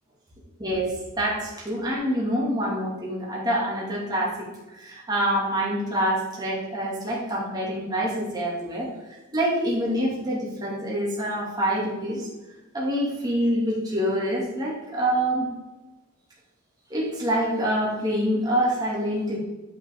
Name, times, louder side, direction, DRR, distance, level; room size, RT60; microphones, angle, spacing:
voice 1, 0.6-4.4 4.7-8.9 9.3-12.3 12.7-15.5 16.9-19.4, equal, 20° right, -5 dB, 2.4 m, -26 dB
11.0 x 5.8 x 3.6 m, 1.1 s
head